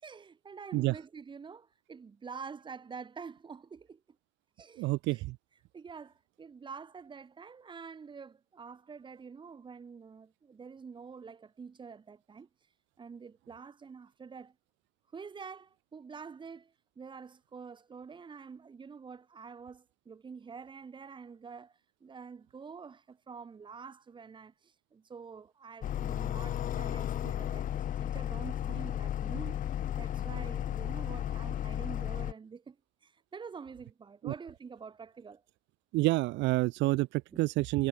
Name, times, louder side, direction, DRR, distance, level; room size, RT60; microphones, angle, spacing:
voice 1, 0.0-4.0 4.6-5.2 5.7-12.5 13.0-14.5 15.1-29.6 30.0-32.8 33.0-35.4 37.3-37.4, right 5 dB, 25° right, 4.8 m, -47 dB
voice 2, 4.8-5.3 34.2-34.3 35.9-37.9, right 20 dB, 80° right, 0.8 m, -28 dB
sound 1, 25.8-32.3, left 11 dB, 45° left, 1.2 m, -34 dB
cardioid pair, 145°, 19 cm